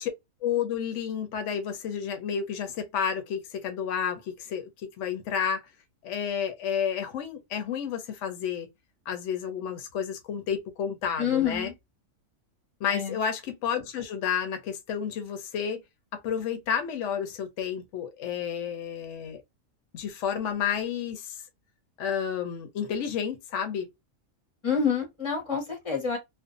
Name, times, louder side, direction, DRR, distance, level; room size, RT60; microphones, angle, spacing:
voice 1, 0.4-5.6 6.0-8.7 9.1-11.7 12.8-15.8 16.1-19.4 19.9-21.4 22.0-23.9, left 7 dB, 70° left, 0.9 m, -31 dB
voice 2, 11.2-11.7 12.9-13.1 24.6-26.2, left 6 dB, 25° left, 0.8 m, -27 dB
2.5 x 2.2 x 2.4 m
omnidirectional pair, 1.4 m